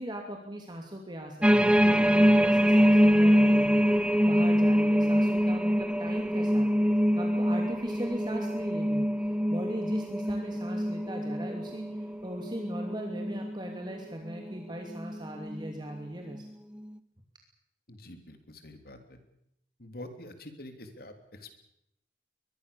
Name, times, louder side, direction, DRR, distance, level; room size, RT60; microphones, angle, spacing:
voice 1, 0.0-3.8 4.2-6.7 7.2-9.1 9.5-11.9 12.2-16.4, right 1 dB, 25° right, 2 dB, 2.8 m, -39 dB
sound 1, 1.4-13.8 14.3-14.5 14.9-15.7 16.3-16.4, equal, 5° right, 1.0 m, -24 dB
voice 2, 17.9-19.2 19.8-21.6, left 1 dB, 55° left, 7 dB, 3.2 m, -46 dB
23.0 x 22.0 x 7.0 m, 0.79 s
head